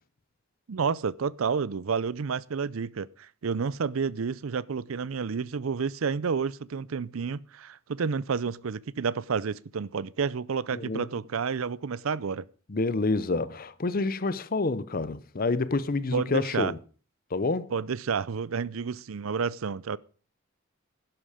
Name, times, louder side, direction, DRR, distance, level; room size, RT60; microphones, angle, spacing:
voice 1, 0.7-12.4 16.1-16.7 17.7-20.0, right 5 dB, 90° right, 0.5 m, -30 dB
voice 2, 10.7-11.1 12.7-16.8 17.3-17.7, left 3 dB, 45° left, 0.7 m, -28 dB
11.5 x 11.0 x 5.0 m
head